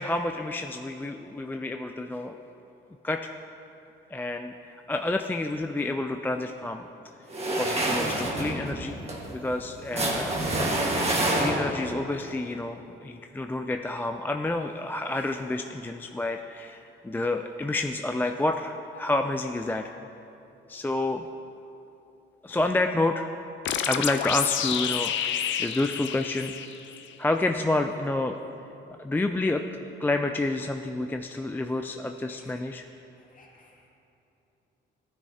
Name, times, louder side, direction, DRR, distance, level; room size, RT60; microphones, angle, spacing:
voice 1, 0.0-2.4 3.0-3.3 4.1-6.9 7.6-9.0 9.3-10.4 11.4-19.9 20.7-21.2 22.4-23.3 23.8-26.5 27.2-28.4 29.0-32.8, left 2 dB, 10° left, 5 dB, 0.3 m, -29 dB
sound 1, 7.3-11.9, right 1 dB, 30° right, 1.6 m, -27 dB
sound 2, 23.7-27.1, left 9 dB, 70° left, 0.6 m, -29 dB
voice 2, 32.2-32.7 33.1-33.9, left 2 dB, 40° left, -2 dB, 2.1 m, -58 dB
14.5 x 9.8 x 2.8 m, 2.9 s
cardioid pair, 90°, 20 cm